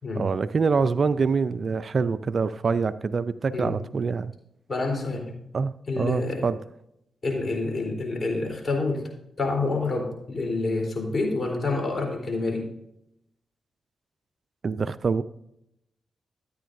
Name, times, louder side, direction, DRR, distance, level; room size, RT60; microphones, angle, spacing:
voice 1, 0.2-4.3 5.5-6.6 14.6-15.2, right 5 dB, 55° right, 15 dB, 0.4 m, -25 dB
voice 2, 4.7-5.3 5.9-6.5 7.2-9.1 9.4-12.7, left 3 dB, 50° left, 1 dB, 3.6 m, -28 dB
14.0 x 9.3 x 2.6 m, 0.79 s
supercardioid pair, 40°, 0 cm